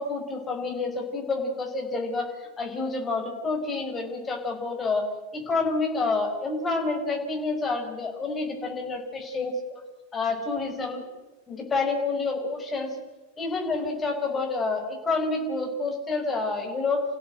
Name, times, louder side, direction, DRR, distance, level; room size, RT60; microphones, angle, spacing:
voice 1, 0.0-5.1 5.3-9.8 10.1-11.1 11.5-13.0 13.4-17.0, left 3 dB, 20° left, 2 dB, 5.3 m, -28 dB
29.5 x 16.0 x 7.9 m, 1.2 s
figure-of-eight pair, 90°, 0 cm